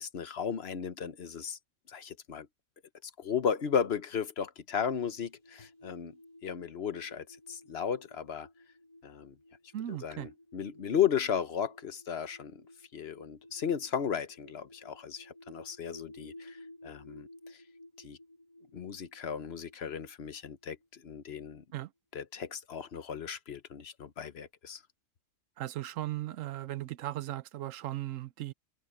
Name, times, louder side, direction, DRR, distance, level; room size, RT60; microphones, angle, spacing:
voice 1, 0.0-1.6 1.9-2.5 3.0-6.2 6.4-8.5 9.0-9.4 9.9-12.6 12.9-17.6 18.0-18.2 18.7-21.6 22.1-24.8, left 8 dB, 55° left, 1.1 m, -35 dB
sound 1, 4.9-21.2, left 1 dB, 25° left, 2.9 m, -55 dB
voice 2, 9.7-10.3 21.7-21.9 25.6-28.5, right 14 dB, 75° right, 1.0 m, -37 dB
omnidirectional pair, 1.4 m